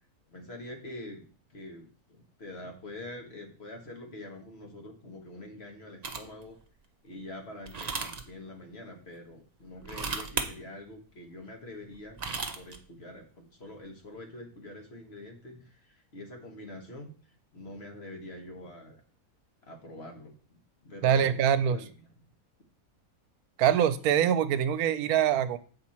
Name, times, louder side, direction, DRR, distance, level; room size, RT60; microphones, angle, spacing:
voice 1, 0.3-1.2 1.5-6.6 7.0-17.1 17.5-19.0 19.6-21.9, left 1 dB, 45° left, 3 dB, 1.7 m, -45 dB
sound 1, 6.0-6.4 7.7-8.2 9.8-10.5 11.9-12.8, right 4 dB, 35° right, 0.7 m, -34 dB
voice 2, 21.0-21.8 23.6-25.6, right 9 dB, 85° right, 14 dB, 1.1 m, -24 dB
7.8 x 5.2 x 4.3 m, 0.41 s
omnidirectional pair, 1.5 m